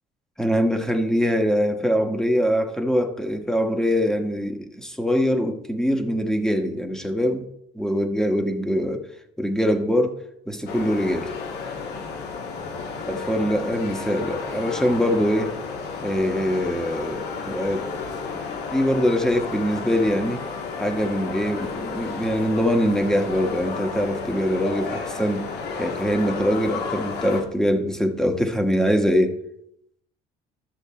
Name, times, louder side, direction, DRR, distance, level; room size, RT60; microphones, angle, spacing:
voice 1, 0.4-7.5 7.7-9.0 9.4-11.3 13.1-15.5 16.0-17.9 18.7-20.5 20.8-25.5 25.8-29.4, equal, 5° left, 1.2 m, -23 dB
sound 1, 10.7-27.4, left 4 dB, 75° left, 1.8 m, -32 dB
12.0 x 6.9 x 4.2 m
cardioid pair, 110°, 17 cm